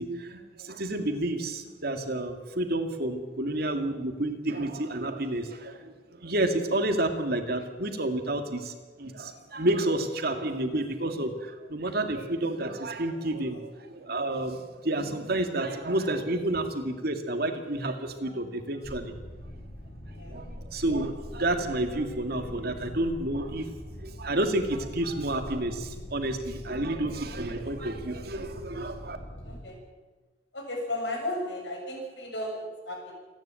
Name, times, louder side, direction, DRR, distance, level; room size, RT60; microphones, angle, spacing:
voice 1, 0.0-19.1 20.1-29.2, right 1 dB, 60° right, 6 dB, 2.1 m, -30 dB
sound 1, 18.8-29.6, equal, 40° left, 2.7 m, -42 dB
voice 2, 29.4-29.8 30.5-33.1, left 1 dB, 75° left, 0 dB, 7.5 m, -34 dB
27.5 x 10.5 x 9.0 m, 1.3 s
head